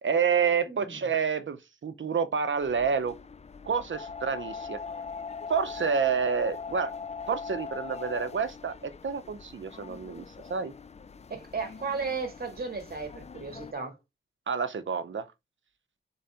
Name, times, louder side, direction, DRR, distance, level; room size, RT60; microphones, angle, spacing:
voice 1, 0.0-3.2 3.6-4.8 5.5-6.9 7.3-10.7 14.5-15.3, right 6 dB, 65° right, 0.7 m, -28 dB
voice 2, 0.7-1.0 11.3-14.0, right 4 dB, 45° right, 1.7 m, -35 dB
sound 1, 2.6-13.7, left 5 dB, 30° left, 0.4 m, -41 dB
4.1 x 3.8 x 3.4 m
wide cardioid pair, 85°, 21 cm